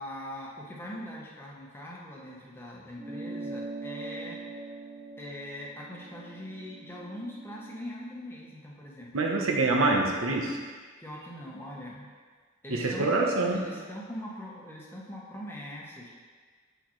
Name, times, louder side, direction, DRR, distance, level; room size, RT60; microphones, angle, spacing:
voice 1, 0.0-4.4 5.2-9.6 11.0-12.1 12.6-13.1 13.5-16.1, equal, 10° left, -4 dB, 1.0 m, -42 dB
sound 1, 3.0-7.8, right 2 dB, 20° right, 0.3 m, -42 dB
voice 2, 9.1-10.6 12.7-13.6, right 2 dB, 85° right, 1 dB, 0.9 m, -25 dB
6.9 x 6.3 x 3.1 m, 1.5 s
head